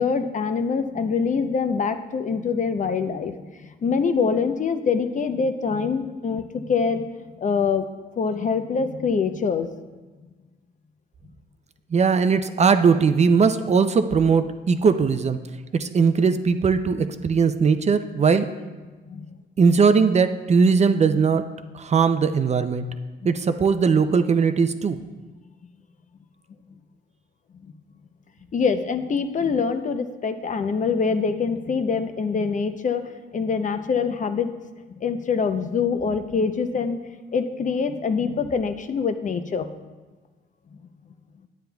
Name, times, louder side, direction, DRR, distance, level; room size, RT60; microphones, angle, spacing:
voice 1, 0.0-7.9 8.2-9.7 19.1-19.4 28.5-33.0 33.3-34.5 35.0-37.0 37.3-39.7, left 5 dB, 40° left, 9 dB, 0.6 m, -24 dB
voice 2, 11.9-15.4 15.8-18.5 19.6-21.4 21.7-22.8 23.2-25.0, right 5 dB, 35° right, 9 dB, 0.5 m, -19 dB
9.6 x 9.1 x 2.3 m, 1.3 s
cardioid pair, 90°, 20 cm